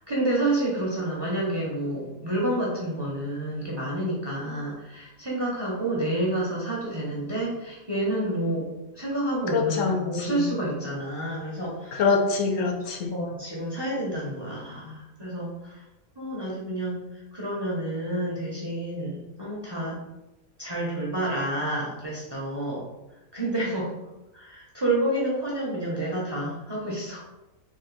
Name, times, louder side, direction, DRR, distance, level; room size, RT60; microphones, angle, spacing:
voice 1, 0.1-8.7 8.9-12.0 13.1-15.8 16.2-17.0 17.3-19.9 20.6-22.8 23.3-23.9 24.3-27.2, right 1 dB, 25° right, -5 dB, 0.7 m, -29 dB
voice 2, 9.5-10.5 11.9-13.2, left 5 dB, 70° left, 2 dB, 0.9 m, -25 dB
3.6 x 2.5 x 3.9 m, 0.98 s
omnidirectional pair, 1.5 m